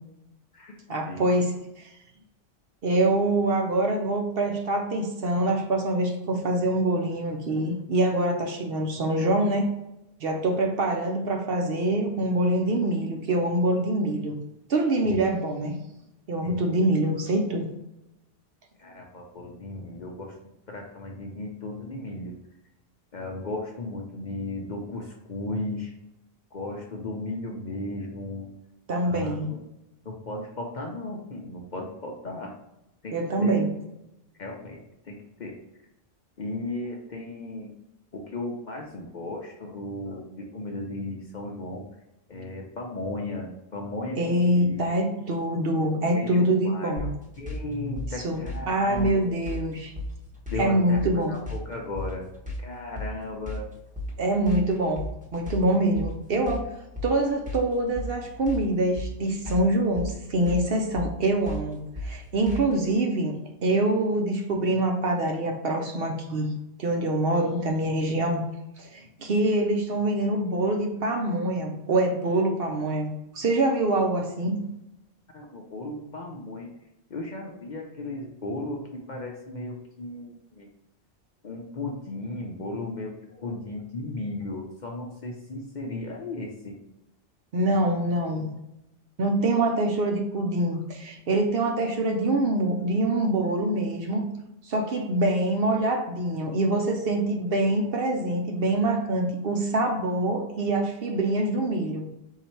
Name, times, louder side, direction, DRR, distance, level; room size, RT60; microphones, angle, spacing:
voice 1, 0.9-1.5 1.8-1.9 2.8-9.7 10.2-14.4 14.7-15.8 16.3-17.7 28.9-29.5 33.1-33.7 44.2-47.1 48.2-48.4 48.7-49.9 50.6-51.4 54.2-55.0 55.3-56.8 57.0-63.3 63.6-66.5 66.8-68.4 68.8-74.6 87.5-88.5 89.2-94.3 94.7-102.1, right 1 dB, 60° right, 3 dB, 0.8 m, -25 dB
voice 2, 18.8-20.3 20.7-22.3 23.1-25.9 26.5-28.5 29.0-29.6 30.0-32.5 33.0-33.1 33.4-33.6 34.4-35.6 36.4-37.7 38.1-41.8 42.3-45.0 46.1-47.1 47.4-49.4 50.5-51.0 51.3-52.3 52.6-53.7 75.3-76.7 77.1-80.7 81.4-86.8, left 2 dB, 45° left, 0 dB, 0.7 m, -35 dB
sound 1, 47.0-62.9, left 1 dB, 5° right, 0.9 m, -36 dB
4.1 x 2.8 x 4.4 m, 0.89 s
omnidirectional pair, 1.2 m